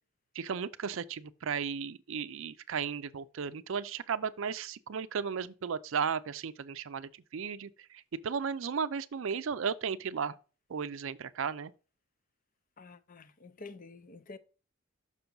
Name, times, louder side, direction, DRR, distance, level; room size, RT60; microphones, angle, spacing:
voice 1, 0.4-10.3 10.7-11.7, right 6 dB, 65° right, 0.5 m, -35 dB
voice 2, 12.8-14.4, left 3 dB, 40° left, 0.6 m, -49 dB
6.1 x 5.8 x 3.8 m
head